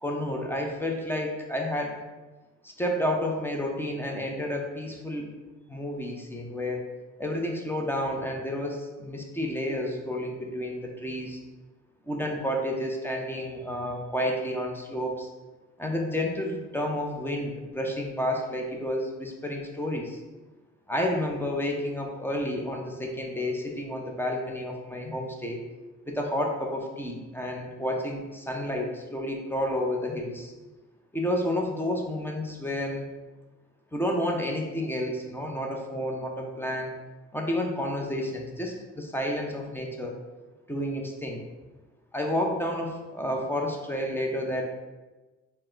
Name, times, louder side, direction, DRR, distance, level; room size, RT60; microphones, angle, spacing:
voice 1, 0.0-1.9 2.6-5.3 5.7-6.8 7.2-11.4 12.1-15.3 15.8-20.2 20.9-25.6 26.1-30.5 31.1-33.1 33.9-36.9 37.3-40.1 40.7-41.4 42.1-44.6, left 1 dB, 5° left, 1 dB, 0.6 m, -30 dB
4.6 x 2.1 x 3.8 m, 1.2 s
cardioid pair, 90°, 30 cm